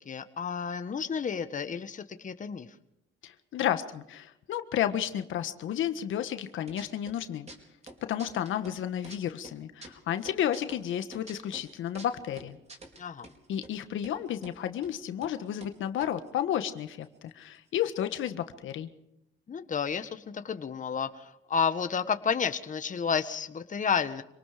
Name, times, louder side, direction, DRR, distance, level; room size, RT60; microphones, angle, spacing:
voice 1, 0.0-2.7 13.0-13.3 19.5-24.2, left 6 dB, 40° left, 9 dB, 1.5 m, -31 dB
voice 2, 3.2-7.5 8.0-12.6 13.5-18.9, left 10 dB, 80° left, 9 dB, 1.6 m, -32 dB
sound 1, 6.4-7.2 7.5-9.2 9.4-13.3 13.6-13.7 14.0-14.6 14.8-14.9 15.2-15.3 15.6-17.3 17.5-17.6 17.8-18.2, right 2 dB, 35° right, 4.7 m, -48 dB
26.5 x 19.0 x 5.1 m, 0.83 s
cardioid pair, 90°, 20 cm